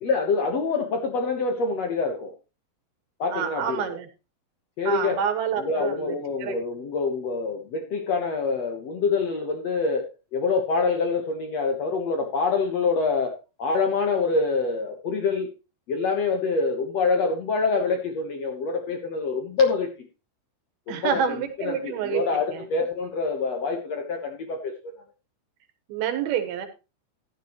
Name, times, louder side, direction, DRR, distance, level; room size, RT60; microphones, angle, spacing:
voice 1, 0.0-2.3 3.2-3.8 4.8-5.2 5.6-15.5 15.9-19.9 20.9-24.9, left 4 dB, 60° left, 4 dB, 1.9 m, -26 dB
voice 2, 3.3-4.1 4.9-6.2 6.4-6.6 20.9-22.6 25.9-26.7, right 8 dB, 80° right, 7 dB, 3.2 m, -28 dB
14.5 x 10.5 x 3.1 m, 0.29 s
omnidirectional pair, 4.5 m